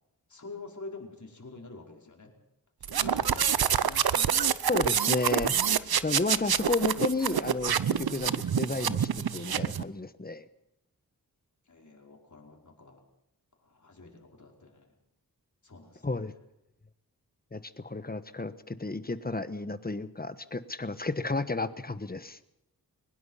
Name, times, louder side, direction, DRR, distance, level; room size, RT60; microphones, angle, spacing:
voice 1, 0.3-2.3 2.8-4.1 11.7-13.0 13.6-14.9 15.6-16.3, left 3 dB, 50° left, 0 dB, 5.0 m, -47 dB
sound 1, 2.8-9.8, right 8 dB, 80° right, 0.8 m, -27 dB
voice 2, 4.7-5.5 6.0-10.5 16.0-16.3 17.5-22.4, left 3 dB, 25° left, 12 dB, 1.2 m, -32 dB
22.5 x 20.0 x 5.7 m, 0.85 s
wide cardioid pair, 90°, 36 cm